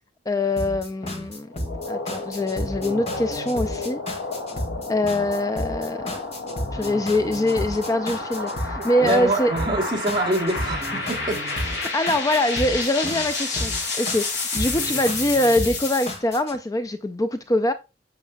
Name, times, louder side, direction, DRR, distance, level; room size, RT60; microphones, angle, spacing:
voice 1, 0.3-1.5 1.9-4.0 4.9-6.1 6.7-9.5 11.8-17.7, left 1 dB, 20° left, 0.4 m, -23 dB
sound 1, 0.6-16.6, left 1 dB, 35° left, 2.0 m, -33 dB
sound 2, 1.5-16.1, left 3 dB, 65° left, 3.0 m, -31 dB
voice 2, 8.8-11.9, right 1 dB, 25° right, 2.5 m, -26 dB
9.0 x 7.3 x 2.3 m
head